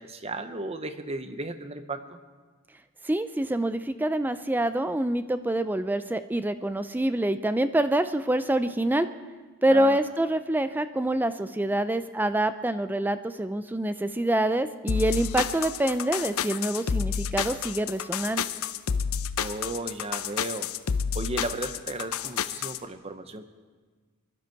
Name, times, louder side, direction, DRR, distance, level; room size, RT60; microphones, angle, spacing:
voice 1, 0.0-2.2 9.7-10.0 19.4-20.7 21.1-23.5, right 2 dB, 30° right, 10 dB, 0.8 m, -35 dB
voice 2, 3.0-9.1 9.6-18.4, right 1 dB, 10° right, 11 dB, 0.4 m, -26 dB
sound 1, 14.9-22.8, left 7 dB, 80° left, 0.6 m, -30 dB
23.0 x 12.0 x 4.6 m, 1.4 s
head